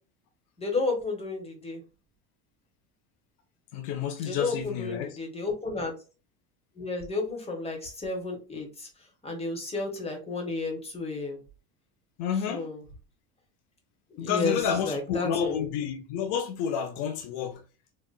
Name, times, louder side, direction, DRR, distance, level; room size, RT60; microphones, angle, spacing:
voice 1, 0.6-1.8 4.2-5.9 6.7-8.9 9.2-11.4 12.5-12.8 14.1-14.6 14.8-15.7, left 3 dB, 15° left, 1.3 m, -32 dB
voice 2, 3.7-5.2 12.2-12.7 14.2-17.6, left 7 dB, 70° left, 0.7 m, -30 dB
4.0 x 2.4 x 2.2 m
supercardioid pair, 110°, 37 cm